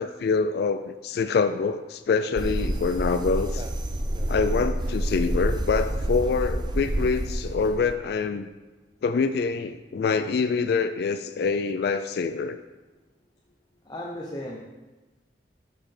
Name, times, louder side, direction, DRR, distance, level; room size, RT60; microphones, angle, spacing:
voice 1, 0.0-3.7 4.3-8.5 9.0-12.6, left 5 dB, 60° left, 10 dB, 0.3 m, -25 dB
sound 1, 2.4-7.9, right 1 dB, 25° right, 0.5 m, -28 dB
voice 2, 13.9-14.6, left 1 dB, 20° left, -3 dB, 0.7 m, -35 dB
6.3 x 6.0 x 4.9 m, 1.2 s
head